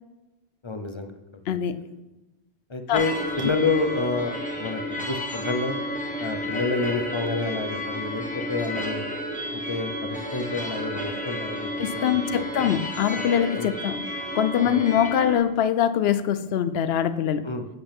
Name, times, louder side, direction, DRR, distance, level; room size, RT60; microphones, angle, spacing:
voice 1, 0.6-1.1 1.5-1.7 2.7-4.3 4.6-5.8 6.2-9.0 9.5-12.5 13.6-13.7 14.6-14.8 17.4-17.7, left 3 dB, 30° left, 7 dB, 0.7 m, -29 dB
voice 2, 1.5-1.8 2.9-3.0 11.8-14.0 14.3-17.4, left 9 dB, 75° left, 14 dB, 0.8 m, -23 dB
sound 1, 2.9-15.4, equal, 5° left, 1.5 m, -32 dB
11.0 x 7.9 x 3.5 m, 1.0 s
omnidirectional pair, 1.1 m